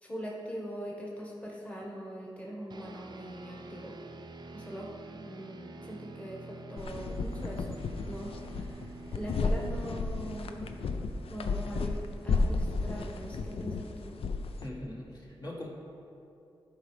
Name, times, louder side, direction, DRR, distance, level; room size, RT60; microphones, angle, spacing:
voice 1, 0.0-4.0 4.5-8.9 9.1-10.9 11.3-14.1, equal, 15° left, -3 dB, 1.4 m, -42 dB
sound 1, 2.7-14.4, right 3 dB, 50° right, 0.5 m, -49 dB
sound 2, 6.8-14.7, left 3 dB, 75° left, 0.4 m, -33 dB
voice 2, 14.6-15.7, left 1 dB, 45° left, -4 dB, 1.5 m, -41 dB
11.5 x 4.8 x 3.3 m, 2.8 s
cardioid pair, 65°, 10 cm